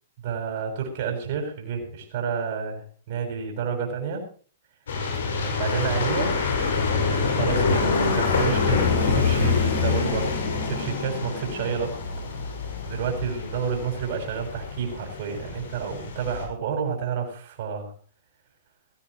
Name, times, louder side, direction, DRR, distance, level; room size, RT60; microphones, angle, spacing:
voice 1, 0.2-4.2 5.4-6.4 7.3-12.0 12.9-17.9, right 6 dB, 55° right, 1 dB, 6.7 m, -30 dB
sound 1, 4.9-16.5, left 4 dB, 70° left, 6.0 m, -26 dB
22.0 x 15.5 x 3.1 m, 0.42 s
hypercardioid pair, 115°, 0 cm